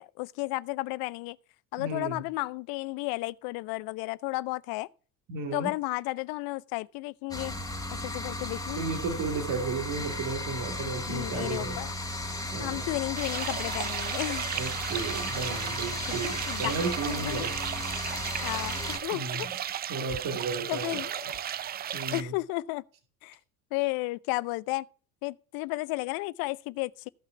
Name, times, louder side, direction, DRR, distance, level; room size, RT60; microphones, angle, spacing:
voice 1, 0.0-1.4 1.7-4.9 5.5-7.5 8.0-8.9 11.1-11.9 12.6-14.5 16.2-17.5 18.4-19.5 20.7-21.4 22.1-22.8 23.2-23.4 23.7-24.9 25.2-27.1, left 22 dB, 60° left, 0.6 m, -33 dB
voice 2, 1.8-2.2 5.3-5.7 8.8-11.8 12.5-12.8 14.5-17.5 19.1-19.4 19.9-21.0 21.9-22.3, right 4 dB, 50° right, 2.3 m, -33 dB
sound 1, 7.3-19.0, left 1 dB, 10° left, 2.7 m, -35 dB
sound 2, 13.2-22.2, right 10 dB, 25° right, 0.4 m, -35 dB
15.0 x 5.7 x 4.5 m
hypercardioid pair, 70°, 42 cm